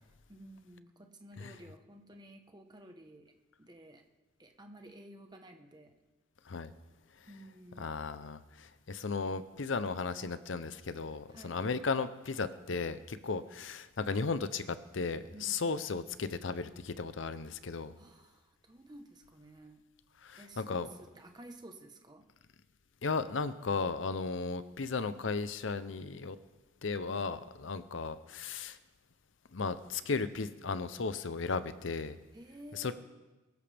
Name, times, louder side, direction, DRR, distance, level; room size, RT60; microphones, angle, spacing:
voice 1, 0.3-3.3 3.6-4.0 4.4-6.0 7.3-8.0 11.3-11.6 15.3-15.9 18.0-19.8 20.4-22.3 27.1-27.3 32.3-32.9, right 1 dB, 20° right, 4 dB, 1.1 m, -53 dB
voice 2, 7.8-17.9 20.2-20.9 23.0-26.4 26.8-28.8 29.5-32.2 32.7-32.9, left 4 dB, 80° left, 13 dB, 0.7 m, -35 dB
22.0 x 13.0 x 3.5 m, 1.2 s
head